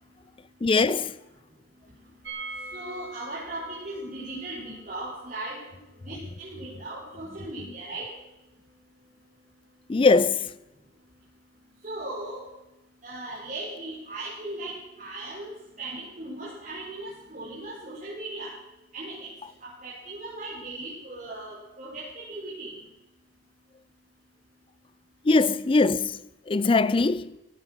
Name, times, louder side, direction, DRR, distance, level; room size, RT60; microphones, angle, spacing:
voice 1, 0.6-1.1 9.9-10.4 25.3-26.2 26.5-27.3, left 3 dB, 30° left, 0.4 m, -21 dB
sound 1, 2.2-8.0 8.3-8.4 8.6-8.7, right 3 dB, 75° right, 4.1 m, -45 dB
voice 2, 2.7-5.6 6.0-8.1 11.8-12.4 13.0-18.5 18.9-19.3 19.6-22.7, right 2 dB, 45° right, 5.1 m, -38 dB
17.5 x 11.5 x 6.0 m
head